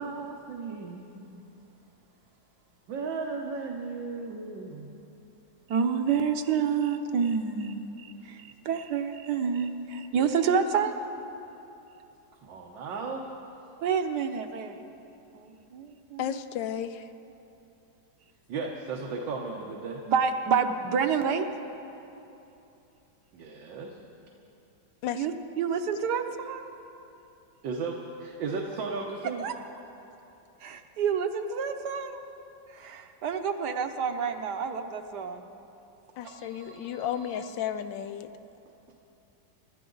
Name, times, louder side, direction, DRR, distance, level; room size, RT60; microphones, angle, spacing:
voice 1, 0.0-1.4 2.9-4.9 12.4-13.3 18.5-20.0 23.3-24.0 27.6-29.5 36.2-37.5, right 4 dB, 85° right, 0 dB, 1.8 m, -36 dB
voice 2, 5.7-10.9 13.8-14.8 15.3-16.4 20.1-21.5 25.1-26.6 29.4-29.5 30.6-32.2 32.7-35.5, right 6 dB, 70° right, 7 dB, 1.3 m, -28 dB
voice 3, 16.2-17.1 25.0-25.3 36.2-38.3, left 10 dB, 90° left, 12 dB, 1.3 m, -33 dB
26.0 x 12.0 x 3.9 m, 2.9 s
omnidirectional pair, 2.0 m